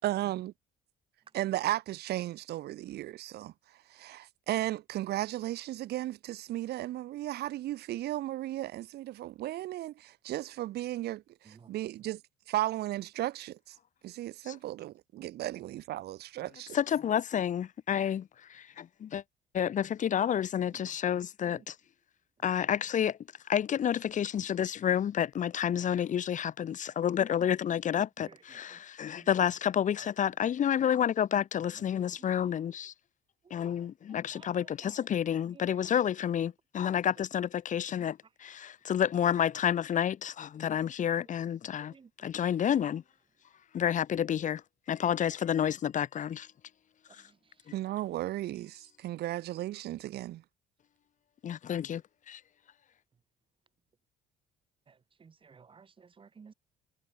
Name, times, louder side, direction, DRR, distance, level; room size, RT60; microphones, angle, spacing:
voice 1, 0.0-0.5 1.3-3.5 3.9-12.2 12.5-13.7 14.0-16.8 47.7-50.4, right 15 dB, 75° right, 3.5 m, -35 dB
voice 2, 16.7-19.2 19.5-21.8 22.4-23.2 23.5-32.9 33.5-43.0 43.7-44.6 44.9-46.5 51.4-52.0 52.3-52.4, left 9 dB, 50° left, 2.0 m, -30 dB
voice 3, 55.2-56.5, right 5 dB, 30° right, 3.7 m, -55 dB
cardioid pair, 110°, 17 cm